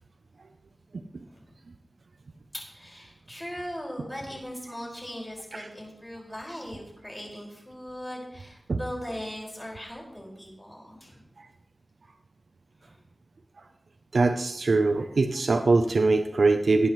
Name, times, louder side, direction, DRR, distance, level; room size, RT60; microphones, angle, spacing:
voice 1, 2.5-11.2 12.8-13.0, equal, 10° left, -2 dB, 5.3 m, -39 dB
voice 2, 14.1-16.9, right 3 dB, 90° right, 7 dB, 0.5 m, -22 dB
20.0 x 8.9 x 3.1 m, 0.84 s
wide cardioid pair, 60°, 0 cm